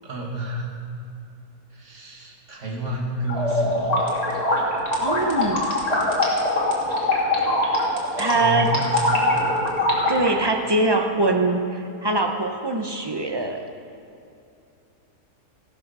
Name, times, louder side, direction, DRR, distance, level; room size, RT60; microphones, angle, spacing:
voice 1, 0.0-0.7 1.7-4.1 7.3-7.4 8.0-9.4 9.8-10.0, equal, 50° right, -1 dB, 2.4 m, -30 dB
sound 1, 3.3-10.3, left 1 dB, 25° left, 2.6 m, -22 dB
voice 2, 5.0-5.7 8.2-8.7 10.1-13.6, right 2 dB, 20° right, 4 dB, 0.7 m, -23 dB
15.5 x 12.0 x 5.6 m, 2.7 s
omnidirectional pair, 1.7 m